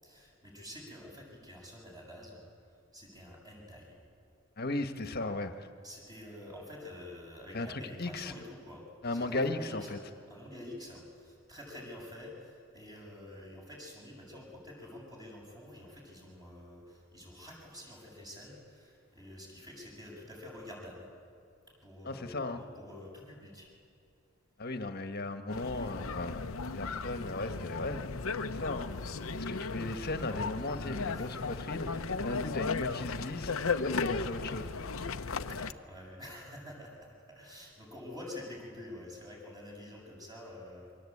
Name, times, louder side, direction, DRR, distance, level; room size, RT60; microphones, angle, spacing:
voice 1, 0.0-2.4 2.9-4.0 5.8-8.9 9.1-21.1 21.8-23.7 29.2-29.4 31.1-31.3 35.5-41.0, left 1 dB, 20° right, -2 dB, 7.2 m, -48 dB
voice 2, 4.6-5.7 7.5-8.3 9.0-10.0 22.0-22.6 24.6-26.4 26.7-28.0 28.5-28.9 29.3-34.7, left 2 dB, 50° left, 7 dB, 1.5 m, -36 dB
sound 1, 25.5-35.7, left 4 dB, 85° left, 0.9 m, -36 dB
27.5 x 23.5 x 8.7 m, 2.4 s
head